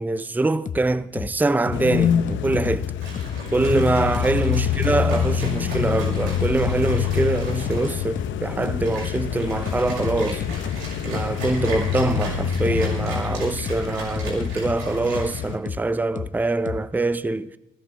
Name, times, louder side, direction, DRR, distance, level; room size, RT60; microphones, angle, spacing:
voice 1, 0.0-2.9 3.5-10.4 11.0-17.6, right 2 dB, 10° right, 0.5 m, -24 dB
sound 1, 0.7-0.8 1.2-1.3 1.7-2.8 3.2-3.3 3.7-3.8 4.2-4.3 4.7-4.8 5.2-5.3 5.7-5.8 6.2-6.8 7.2-7.3 7.7-7.8 8.2-8.3 8.7-8.8 9.2-9.3 9.7-10.8 11.2-11.3 11.7-11.8 12.2-12.3 12.7-12.8 13.2-13.3 13.7-13.8 14.2-14.8 15.2-15.3 15.7-15.8 16.2-16.3 16.7-16.8, left 7 dB, 40° left, 0.9 m, -30 dB
sound 2, 1.7-15.6, left 9 dB, 75° left, 0.8 m, -26 dB
sound 3, 3.0-15.4, right 2 dB, 85° right, 5.8 m, -38 dB
19.5 x 15.5 x 3.3 m
cardioid pair, 90°, 20 cm